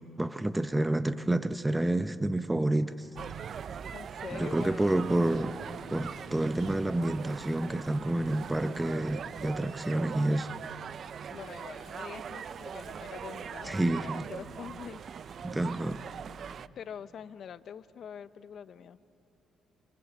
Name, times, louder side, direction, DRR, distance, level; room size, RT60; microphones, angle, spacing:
voice 1, 0.2-3.1 4.3-5.6 5.9-10.5 13.6-14.3 15.4-16.0, right 1 dB, 10° right, 0.9 m, -29 dB
sound 1, 3.2-16.7, right 7 dB, 55° right, 0.5 m, -41 dB
voice 2, 3.9-5.0 11.3-15.4 16.8-19.0, left 8 dB, 60° left, 0.8 m, -45 dB
27.0 x 26.5 x 7.6 m
cardioid pair, 90°, 0 cm